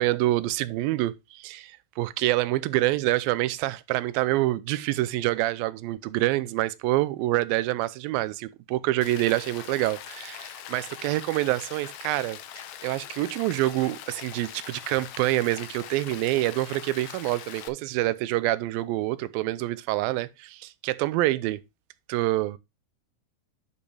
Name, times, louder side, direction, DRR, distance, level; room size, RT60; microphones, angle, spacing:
voice 1, 0.0-21.6 22.1-22.6, right 17 dB, 85° right, 2.4 m, -26 dB
Rain, 9.0-17.7, left 10 dB, 75° left, 1.7 m, -42 dB
11.0 x 5.4 x 3.2 m
omnidirectional pair, 4.1 m